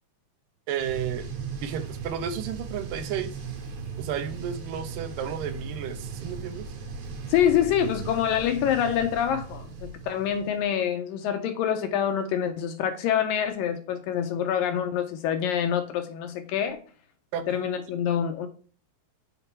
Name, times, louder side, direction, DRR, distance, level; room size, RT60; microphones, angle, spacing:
voice 1, 0.7-1.3 1.6-3.3 4.0-6.7 17.3-17.6, right 8 dB, 75° right, 2.2 m, -32 dB
sound 1, 0.8-10.6, right 5 dB, 55° right, 2.7 m, -37 dB
voice 2, 7.3-16.8 17.5-18.5, left 9 dB, 75° left, 2.3 m, -26 dB
6.7 x 4.8 x 4.5 m
omnidirectional pair, 4.4 m